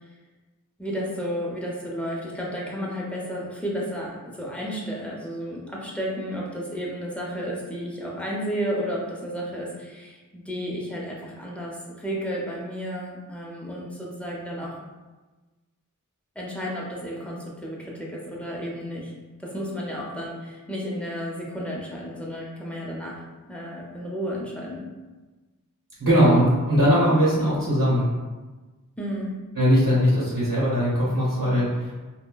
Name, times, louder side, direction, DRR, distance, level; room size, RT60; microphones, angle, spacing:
voice 1, 0.8-14.8 16.4-19.1 19.4-23.2 23.5-24.8 29.0-29.3, equal, 5° left, -4 dB, 0.7 m, -32 dB
voice 2, 26.0-28.0 29.5-31.9, equal, 85° right, -9 dB, 0.9 m, -20 dB
3.6 x 2.1 x 2.2 m, 1.2 s
wide cardioid pair, 65°, 33 cm